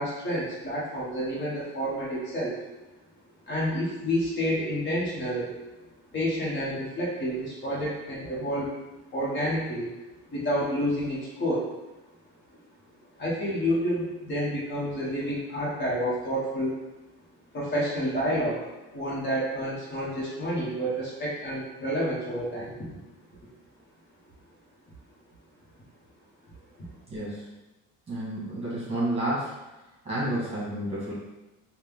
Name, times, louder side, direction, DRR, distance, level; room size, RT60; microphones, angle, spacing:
voice 1, 0.0-2.6 3.5-5.5 6.1-8.7 9.1-9.9 10.3-11.7 13.2-16.8 17.5-23.0, equal, 35° left, -7 dB, 1.4 m, -29 dB
voice 2, 27.1-27.5 28.1-29.5 30.0-31.1, right 1 dB, 20° right, -8 dB, 1.5 m, -30 dB
4.3 x 2.4 x 3.6 m, 1.0 s
cardioid pair, 145°, 32 cm